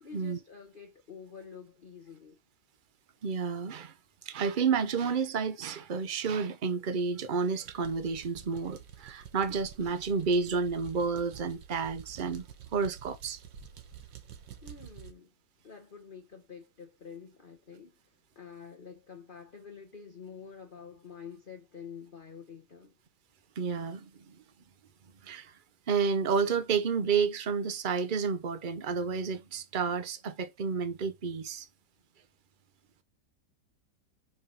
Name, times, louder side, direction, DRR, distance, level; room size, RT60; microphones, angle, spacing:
voice 1, 0.0-2.4 14.6-15.3 15.6-23.0, left 6 dB, 35° left, 1.1 m, -48 dB
voice 2, 3.2-3.9 4.3-12.5 12.7-13.4 23.6-24.4 25.2-25.5 25.9-31.7, right 5 dB, 50° right, 0.5 m, -30 dB
sound 1, 7.6-15.1, right 8 dB, 90° right, 1.8 m, -49 dB
5.5 x 4.7 x 5.6 m
omnidirectional pair, 1.9 m